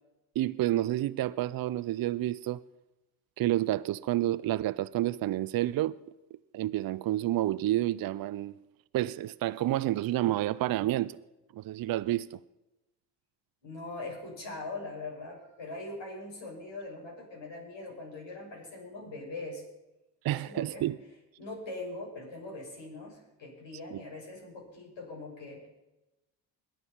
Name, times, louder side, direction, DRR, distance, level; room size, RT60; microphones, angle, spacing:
voice 1, 0.4-2.6 3.4-6.0 6.5-8.6 8.9-11.2 11.5-12.4 20.2-21.0 23.9-24.0, right 14 dB, 45° right, 0.5 m, -29 dB
voice 2, 13.6-19.6 20.3-20.9 21.4-25.7, left 2 dB, 60° left, 6.7 m, -42 dB
21.5 x 7.7 x 5.9 m
hypercardioid pair, 55°, 49 cm